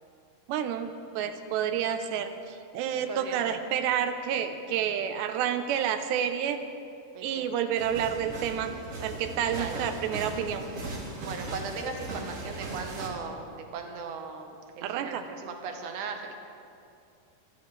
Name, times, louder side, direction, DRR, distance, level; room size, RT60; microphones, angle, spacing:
voice 1, 0.5-6.6 7.2-8.7 9.0-10.7 14.8-15.2, right 9 dB, 85° right, 8 dB, 3.0 m, -29 dB
voice 2, 3.1-3.6 7.1-7.5 9.6-9.8 11.2-16.3, right 5 dB, 65° right, 3 dB, 2.0 m, -38 dB
sound 1, 7.8-13.1, right 2 dB, 40° right, 2.9 m, -38 dB
24.5 x 14.0 x 3.3 m, 2.6 s
omnidirectional pair, 4.9 m